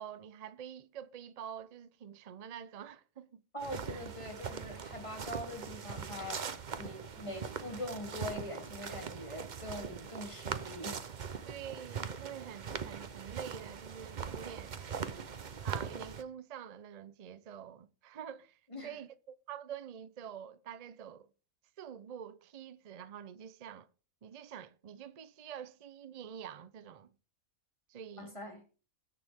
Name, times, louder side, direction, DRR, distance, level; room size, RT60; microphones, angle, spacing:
voice 1, 0.0-3.4 3.9-4.0 11.5-14.8 15.6-21.3 21.8-23.9 24.2-27.1 27.9-28.4, right 9 dB, 75° right, 0.3 m, -47 dB
voice 2, 3.5-6.5 6.8-11.0 11.3-11.5 18.7-19.0 28.2-28.6, left 1 dB, 20° left, 3.1 m, -43 dB
sound 1, 3.6-16.2, right 6 dB, 40° right, 0.7 m, -41 dB
19.5 x 6.7 x 3.6 m
omnidirectional pair, 1.6 m